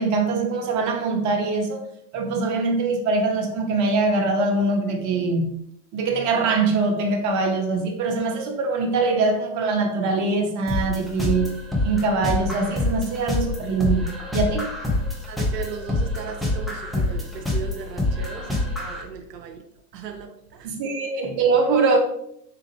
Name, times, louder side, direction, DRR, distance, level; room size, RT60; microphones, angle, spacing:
voice 1, 0.0-1.8 2.1-5.6 5.9-14.7 20.6-22.0, right 3 dB, 40° right, 0.8 m, -23 dB
sound 1, 10.7-19.0, left 2 dB, ahead, 0.6 m, -26 dB
voice 2, 15.2-19.6 19.9-20.7, right 6 dB, 85° right, 0.6 m, -37 dB
3.5 x 2.9 x 2.8 m
hypercardioid pair, 90°, 47 cm